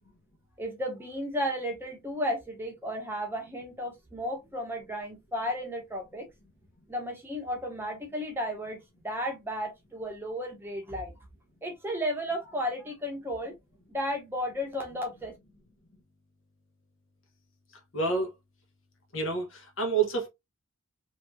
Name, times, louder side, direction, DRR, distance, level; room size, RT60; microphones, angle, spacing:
voice 1, 0.6-6.3 6.9-8.8 9.0-11.1 11.6-13.5 13.9-15.3, equal, 10° right, 0.8 m, -33 dB
voice 2, 17.9-18.3 19.1-20.3, right 4 dB, 65° left, 1.0 m, -28 dB
3.2 x 2.9 x 2.2 m
head